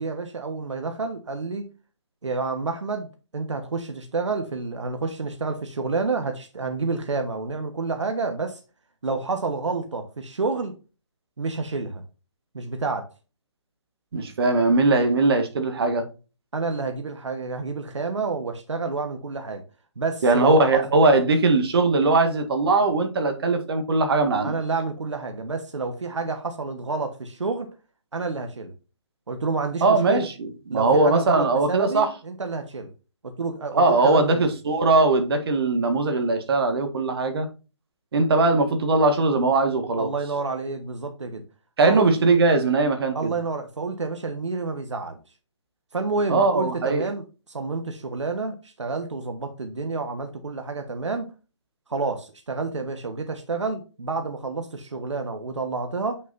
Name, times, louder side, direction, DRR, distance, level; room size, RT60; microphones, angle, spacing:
voice 1, 0.0-1.7 2.2-8.6 9.0-10.7 11.4-12.0 12.5-13.1 16.5-19.6 20.0-20.8 24.4-27.7 28.1-28.7 29.3-30.3 30.7-32.9 33.2-34.5 40.0-41.4 41.8-42.1 43.1-45.2 45.9-51.3 51.9-56.2, right 4 dB, 80° right, 1.4 m, -29 dB
voice 2, 14.1-16.0 20.2-24.5 29.8-32.1 33.7-37.5 38.1-40.1 41.8-43.3 46.3-47.0, right 3 dB, 55° right, 1.8 m, -20 dB
7.8 x 6.2 x 2.7 m
hypercardioid pair, 150°, 15 cm